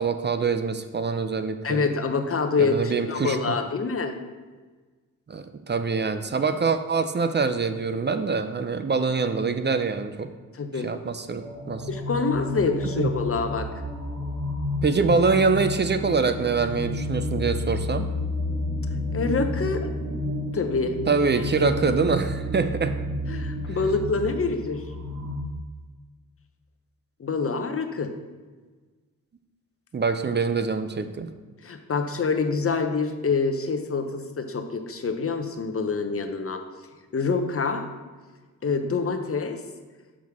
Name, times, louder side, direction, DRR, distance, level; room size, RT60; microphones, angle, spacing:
voice 1, 0.0-1.9 2.6-3.5 5.3-10.3 10.8-11.9 13.0-13.1 14.8-18.1 21.1-22.9 23.7-23.8 29.9-31.3, right 4 dB, 30° right, 9 dB, 0.5 m, -24 dB
voice 2, 1.6-4.1 10.5-10.9 11.9-13.7 19.1-19.9 20.5-21.0 21.6-21.7 23.3-24.8 27.2-28.1 31.6-36.6 37.1-37.9 38.6-39.6, left 4 dB, 40° left, 6 dB, 0.8 m, -26 dB
sound 1, 11.4-25.4, left 1 dB, 55° right, 1.8 m, -31 dB
6.3 x 6.0 x 3.6 m, 1.3 s
cardioid pair, 55°, 35 cm